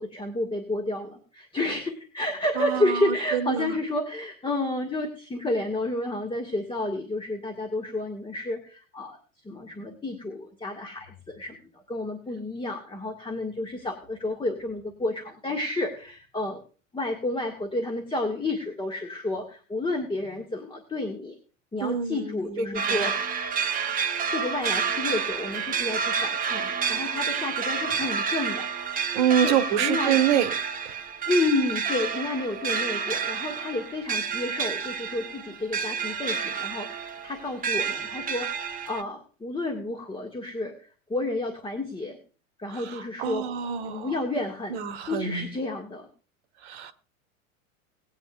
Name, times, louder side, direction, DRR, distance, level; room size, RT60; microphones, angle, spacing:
voice 1, 0.0-9.2 9.4-16.6 16.9-21.3 21.7-23.3 24.3-28.7 28.9-30.2 31.3-42.2 42.6-43.4 43.9-46.1, left 2 dB, 10° left, 3 dB, 1.8 m, -31 dB
voice 2, 2.6-3.8 21.8-23.1 29.1-30.5 42.7-44.1 44.7-45.5 46.6-46.9, right 9 dB, 55° right, 9 dB, 1.3 m, -26 dB
sound 1, 22.7-39.0, right 6 dB, 20° right, 1.2 m, -29 dB
20.0 x 8.8 x 2.4 m, 0.37 s
figure-of-eight pair, 80°, 40 cm